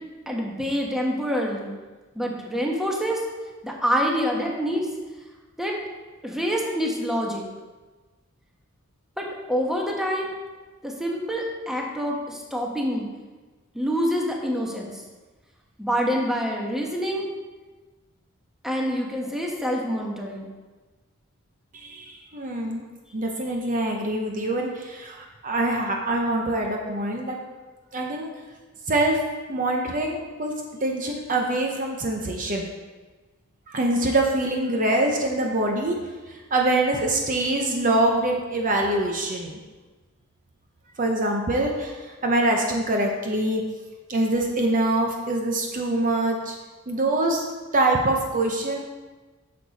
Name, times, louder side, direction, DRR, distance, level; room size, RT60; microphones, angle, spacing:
voice 1, 0.3-1.7 2.1-3.2 3.6-4.9 5.6-5.8 6.2-7.4 9.2-10.3 10.8-13.1 13.7-14.9 15.8-17.3 18.6-20.5, equal, ahead, -1 dB, 1.1 m, -26 dB
voice 2, 21.7-22.8 23.1-27.4 27.9-28.3 28.9-29.2 29.5-30.5 30.8-32.7 33.7-36.0 36.3-39.5 41.0-41.9 42.2-43.6 44.1-46.6 46.9-47.4 47.7-48.8, right 1 dB, 40° right, 1 dB, 0.8 m, -24 dB
8.7 x 6.6 x 4.1 m, 1.3 s
head